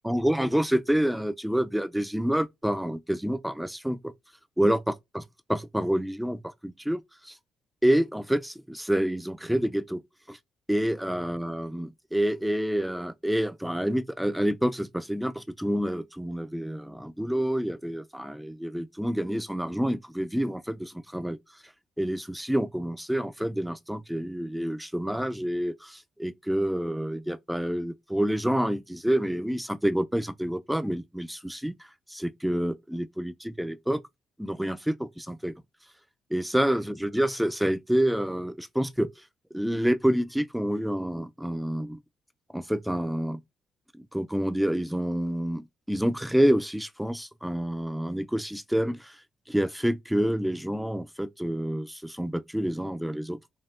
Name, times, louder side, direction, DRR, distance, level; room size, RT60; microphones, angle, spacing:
voice 1, 0.0-4.1 4.6-5.2 5.5-7.3 7.8-10.0 10.3-10.4 10.7-21.4 22.0-31.7 32.1-34.0 34.4-35.5 36.3-39.1 39.5-42.0 42.5-43.4 43.9-49.2 49.5-53.4, equal, ahead, 0.4 m, -28 dB
5.5 x 2.4 x 2.4 m
cardioid pair, 90°, 0 cm